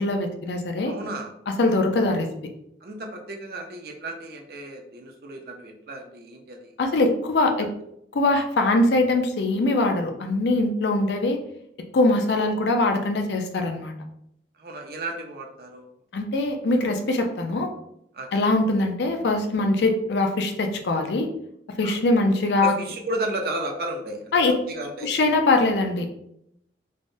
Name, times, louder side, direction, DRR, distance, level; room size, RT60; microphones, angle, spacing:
voice 1, 0.0-0.9 1.5-2.3 6.8-7.7 8.1-11.4 11.9-13.9 16.1-17.7 18.3-21.3 21.8-22.7 24.3-24.5 25.0-26.1, left 2 dB, 75° left, 5 dB, 0.4 m, -22 dB
voice 2, 0.8-1.3 2.8-6.7 14.6-15.9 18.1-18.3 21.8-22.0 22.6-24.3 24.7-25.1, right 1 dB, 55° right, 2 dB, 0.4 m, -33 dB
3.4 x 2.1 x 2.6 m, 0.74 s
head